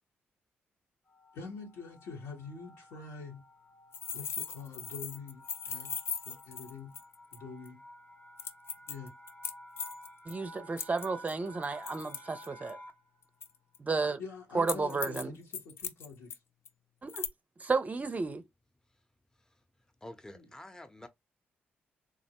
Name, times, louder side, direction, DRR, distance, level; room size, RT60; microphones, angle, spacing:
sound 1, 1.1-13.2, equal, 40° left, 0.9 m, -53 dB
voice 1, 1.3-3.4 4.1-5.9 6.2-6.9 7.3-7.8 8.9-9.1 14.2-16.4 20.3-20.5, left 4 dB, 80° left, 1.1 m, -45 dB
sound 2, 3.9-7.4 7.6-7.7 8.4-10.3 10.8-12.7 13.4-13.8 14.7-15.2 15.5-16.4 16.6-16.7 17.1-17.3, left 6 dB, 60° left, 0.4 m, -38 dB
voice 2, 10.3-12.8 13.8-14.2 14.5-15.3 17.0-17.3 17.6-18.4, right 4 dB, 30° right, 0.5 m, -32 dB
voice 3, 20.0-21.1, left 1 dB, 15° left, 0.7 m, -48 dB
3.6 x 2.0 x 2.9 m
hypercardioid pair, 45°, 5 cm